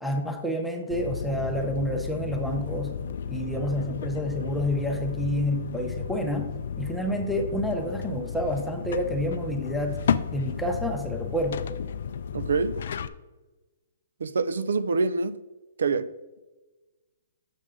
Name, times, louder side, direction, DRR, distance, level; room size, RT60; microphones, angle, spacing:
voice 1, 0.0-2.9 3.3-6.5 6.8-10.0 10.3-11.6, equal, ahead, 0.5 m, -29 dB
sound 1, 0.9-13.1, left 7 dB, 50° left, 0.4 m, -33 dB
voice 2, 12.3-12.8 14.2-15.4 15.8-16.1, right 4 dB, 90° right, 0.5 m, -25 dB
7.3 x 6.6 x 3.7 m
hypercardioid pair, 175°, 0 cm